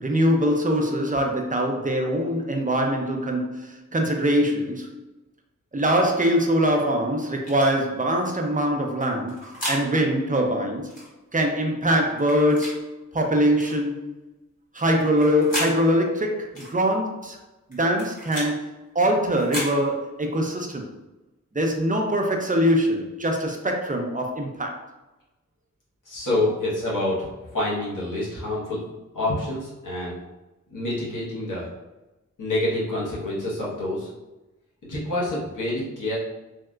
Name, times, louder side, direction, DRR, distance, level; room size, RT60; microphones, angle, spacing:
voice 1, 0.0-5.0 5.7-10.9 11.3-12.9 13.1-14.0 14.7-17.4 17.7-20.9 21.5-24.8, equal, 25° right, 1 dB, 0.5 m, -23 dB
sound 1, 7.4-7.7 9.0-9.8 10.9-11.1 12.2-12.7 13.6-13.8 15.0-15.7 16.5-16.7 17.7-18.5 19.3-19.7, equal, 25° left, 1.5 m, -33 dB
voice 2, 26.1-27.3 27.5-28.8 29.1-30.2 30.7-31.7 32.4-34.1 34.8-36.2, left 1 dB, 90° left, -7 dB, 1.1 m, -27 dB
3.2 x 2.7 x 2.4 m, 1.0 s
cardioid pair, 55°, 30 cm